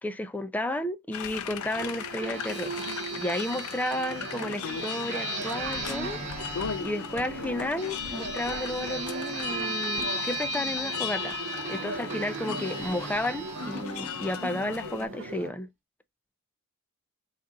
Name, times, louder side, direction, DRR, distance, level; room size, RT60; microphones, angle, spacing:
voice 1, 0.0-6.2 6.8-11.4 11.7-15.7, left 1 dB, 5° left, 0.4 m, -32 dB
sound 1, 1.1-15.1, left 8 dB, 75° left, 0.4 m, -38 dB
sound 2, 1.8-15.0, right 2 dB, 30° right, 1.0 m, -36 dB
sound 3, 4.1-15.5, right 2 dB, 65° right, 0.6 m, -40 dB
3.9 x 2.5 x 3.5 m
head